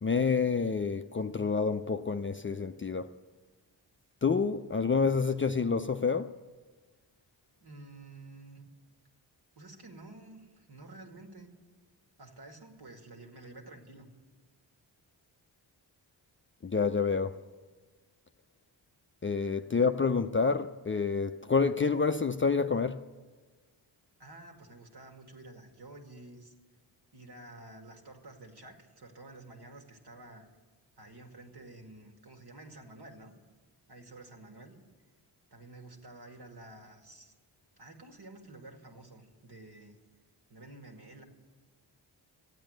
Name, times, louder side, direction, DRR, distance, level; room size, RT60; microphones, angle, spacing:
voice 1, 0.0-3.1 4.2-6.3 16.6-17.4 19.2-23.0, left 5 dB, 25° left, 0.5 m, -28 dB
voice 2, 7.6-8.7 9.6-11.5 12.2-14.1 24.2-26.5 27.1-30.5 31.0-33.3 33.9-34.8 35.5-37.3 37.8-40.0 40.5-41.2, right 2 dB, 60° right, 2.2 m, -50 dB
13.5 x 8.8 x 7.9 m
cardioid pair, 50°, 46 cm